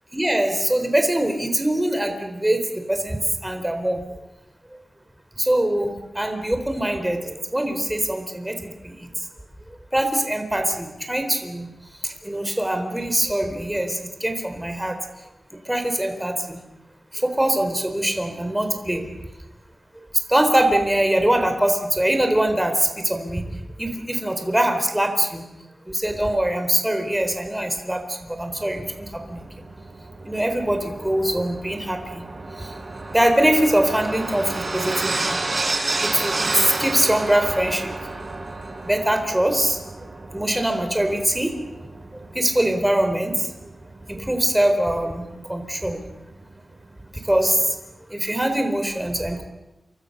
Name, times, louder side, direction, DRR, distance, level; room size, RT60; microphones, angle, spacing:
voice 1, 0.1-2.6 2.9-4.0 5.4-8.7 9.0-9.1 9.9-11.7 12.2-15.0 15.7-16.6 17.2-19.1 20.3-23.4 23.8-25.4 25.9-29.5 30.3-32.2 33.1-35.4 36.0-37.9 38.8-39.8 40.3-41.5 42.3-43.4 44.1-45.2 45.5-46.0 47.3-47.7 48.1-49.4, right 1 dB, 10° right, 6 dB, 4.1 m, -22 dB
sound 1, 28.5-44.9 45.9-46.0, right 2 dB, 40° right, 4.4 m, -31 dB
29.0 x 26.0 x 6.8 m, 0.99 s
wide cardioid pair, 100°, 0 cm